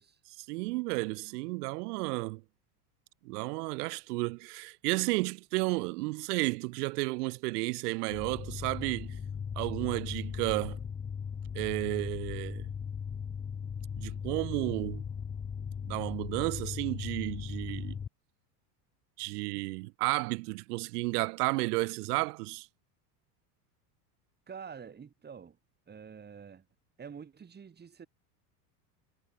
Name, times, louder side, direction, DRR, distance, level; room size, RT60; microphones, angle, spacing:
voice 1, 0.4-2.4 3.2-9.2 9.6-10.8 11.5-12.7 14.0-15.0 15.8-18.0 19.2-22.7, right 25 dB, 75° right, 1.1 m, -32 dB
sound 1, 8.1-18.1, left 7 dB, 15° left, 1.0 m, -38 dB
voice 2, 24.5-25.6 25.9-26.7 27.0-28.1, right 6 dB, 20° right, 6.6 m, -47 dB
supercardioid pair, 145°, 47 cm